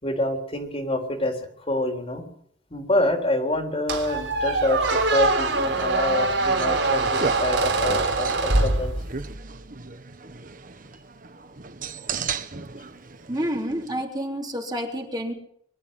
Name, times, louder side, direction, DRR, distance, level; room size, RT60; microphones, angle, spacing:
voice 1, 0.0-1.4 1.7-2.2 2.7-8.9, left 1 dB, 30° left, 3 dB, 3.8 m, -26 dB
Squeak, 3.9-9.4, right 2 dB, 80° right, 3.8 m, -23 dB
sound 1, 5.7-14.0, right 5 dB, 50° right, 1.3 m, -36 dB
voice 2, 13.3-15.3, equal, 20° right, 0 dB, 3.7 m, -29 dB
24.0 x 12.5 x 9.8 m, 0.66 s
head